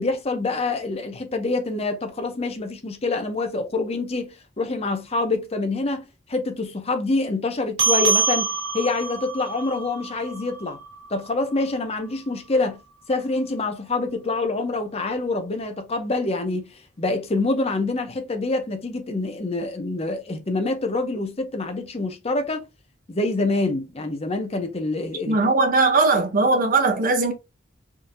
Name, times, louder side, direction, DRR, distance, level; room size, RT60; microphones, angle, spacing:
voice 1, 0.0-10.8 11.1-12.8 13.1-16.7 17.0-22.6 23.1-25.4, left 3 dB, 35° left, 0.6 m, -26 dB
sound 1, 7.8-12.6, right 4 dB, 80° right, 1.6 m, -27 dB
voice 2, 25.3-27.3, right 3 dB, 45° right, 0.7 m, -19 dB
3.7 x 2.6 x 2.6 m
head